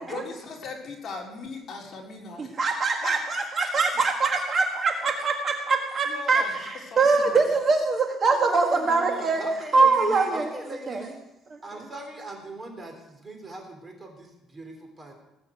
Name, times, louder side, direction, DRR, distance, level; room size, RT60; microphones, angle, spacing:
voice 1, 0.1-2.6 3.0-3.8 4.1-5.1 6.1-7.5 8.3-9.4, left 4 dB, 35° left, -2 dB, 3.9 m, -40 dB
voice 2, 2.4-6.4 6.7-9.4 9.7-10.5 10.9-11.1 11.5-11.6, right 4 dB, 35° right, 2 dB, 1.5 m, -23 dB
voice 3, 9.4-11.1 11.6-15.1, right 1 dB, 20° right, 2 dB, 3.5 m, -40 dB
19.0 x 7.0 x 8.1 m, 0.93 s
cardioid pair, 150°, 0 cm